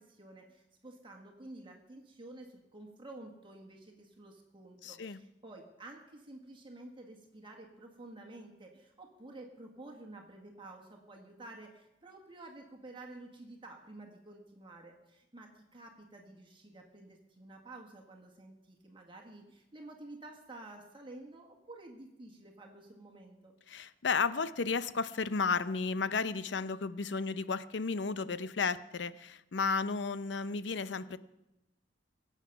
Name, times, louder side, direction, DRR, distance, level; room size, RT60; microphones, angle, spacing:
voice 1, 0.0-23.5, right 2 dB, 30° right, 2 dB, 1.6 m, -51 dB
voice 2, 4.8-5.2 23.7-31.2, left 4 dB, 75° left, 15 dB, 0.6 m, -33 dB
22.0 x 8.3 x 5.9 m, 0.94 s
head